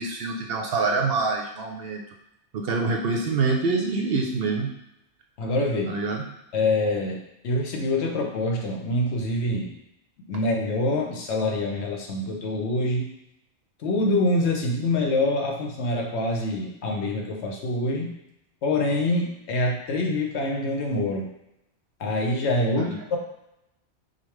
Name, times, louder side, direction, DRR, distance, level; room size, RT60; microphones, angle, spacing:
voice 1, 0.0-2.0 2.5-4.7 5.8-6.2 22.8-23.0, right 3 dB, 65° right, 2 dB, 0.7 m, -26 dB
voice 2, 5.4-5.9 6.5-9.7 10.3-13.1 13.8-18.2 18.6-21.3 22.0-23.2, left 2 dB, 70° left, 1 dB, 1.0 m, -25 dB
5.2 x 2.1 x 3.1 m, 0.86 s
omnidirectional pair, 1.2 m